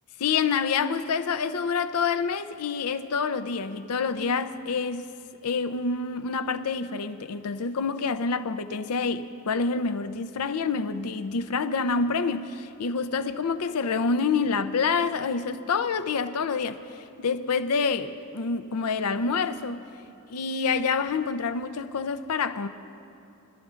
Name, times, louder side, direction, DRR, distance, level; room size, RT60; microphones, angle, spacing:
voice 1, 0.2-5.1 5.4-16.8 17.2-19.8 20.3-22.7, left 5 dB, 85° left, 0.6 m, -27 dB
24.5 x 12.5 x 2.5 m
head